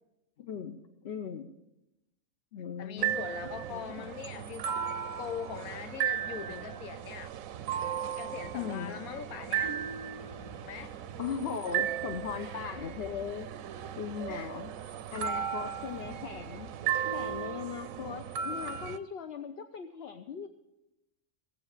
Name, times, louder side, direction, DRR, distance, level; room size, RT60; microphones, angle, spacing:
voice 1, 0.4-1.5 2.5-3.3 3.7-4.1 8.5-9.0 11.2-13.5 14.0-14.7 15.1-16.7 17.1-20.5, left 7 dB, 55° left, 7 dB, 0.9 m, -38 dB
voice 2, 2.8-4.7 5.2-7.3 8.2-9.7 10.6-10.9 14.3-14.5, left 8 dB, 85° left, 11 dB, 1.3 m, -41 dB
sound 1, 3.0-19.0, right 9 dB, 75° right, 1.0 m, -36 dB
sound 2, 9.5-17.5, left 1 dB, 35° left, 2.8 m, -56 dB
17.5 x 7.8 x 6.6 m, 0.91 s
omnidirectional pair, 1.5 m